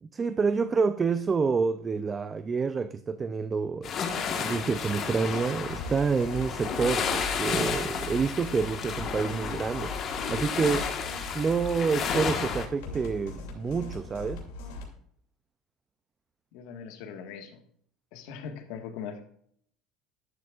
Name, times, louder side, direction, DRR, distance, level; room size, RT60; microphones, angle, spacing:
voice 1, 0.0-3.9 4.4-10.9 11.3-14.4, right 5 dB, 25° right, 0.4 m, -28 dB
sound 1, 3.8-12.7, left 6 dB, 40° left, 1.4 m, -32 dB
sound 2, 5.6-14.9, left 2 dB, 90° left, 2.7 m, -40 dB
voice 2, 16.5-17.6 18.1-19.2, left 7 dB, 70° left, 1.6 m, -40 dB
11.5 x 11.0 x 2.5 m
supercardioid pair, 125°, 0 cm